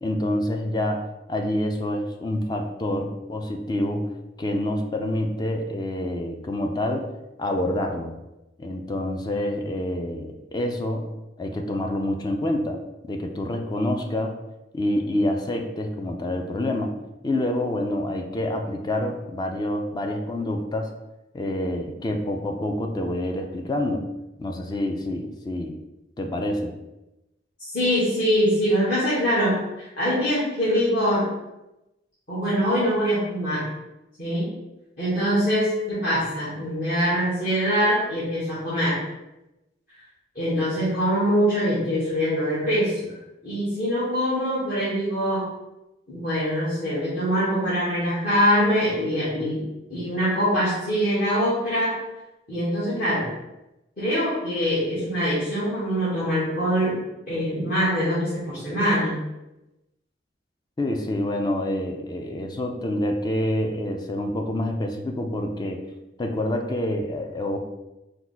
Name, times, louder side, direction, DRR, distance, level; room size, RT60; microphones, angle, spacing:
voice 1, 0.0-4.1 4.4-7.1 7.4-8.1 8.6-11.1 11.4-12.8 13.0-14.4 14.7-17.0 17.2-20.9 21.3-24.1 24.4-25.7 26.2-26.7 60.8-65.8 66.2-67.6, left 1 dB, 25° left, 3 dB, 0.4 m, -27 dB
voice 2, 27.6-31.3 32.3-33.7 34.2-34.5 35.0-39.0 40.3-43.1 43.4-45.5 46.1-49.6 49.9-52.0 52.5-53.3 54.0-57.0 57.3-59.2, equal, 50° left, -10 dB, 1.5 m, -23 dB
4.5 x 2.2 x 4.0 m, 0.95 s
head